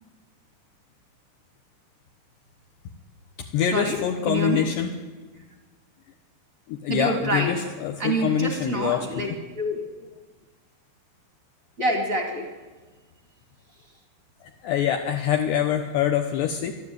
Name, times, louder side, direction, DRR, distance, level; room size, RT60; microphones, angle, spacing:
voice 1, 3.5-4.9 6.7-9.4 14.4-16.7, left 9 dB, 70° left, 4 dB, 3.0 m, -25 dB
voice 2, 4.3-4.6 6.9-7.6 8.0-9.9 11.8-12.5, right 2 dB, 45° right, 3 dB, 1.0 m, -27 dB
24.5 x 13.5 x 9.2 m, 1.3 s
omnidirectional pair, 5.5 m